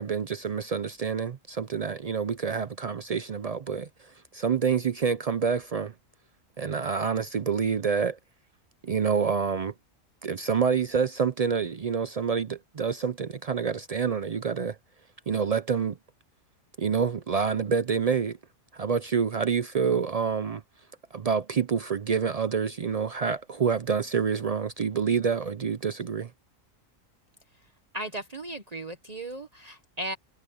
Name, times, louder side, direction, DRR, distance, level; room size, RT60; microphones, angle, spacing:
voice 1, 0.0-5.9 6.6-8.2 8.8-9.7 10.2-14.8 15.3-16.0 16.8-18.4 18.7-20.6 21.1-26.3, right 6 dB, 75° right, 0.3 m, -27 dB
voice 2, 27.9-30.2, right 1 dB, 30° right, 1.1 m, -36 dB
omnidirectional pair, 1.4 m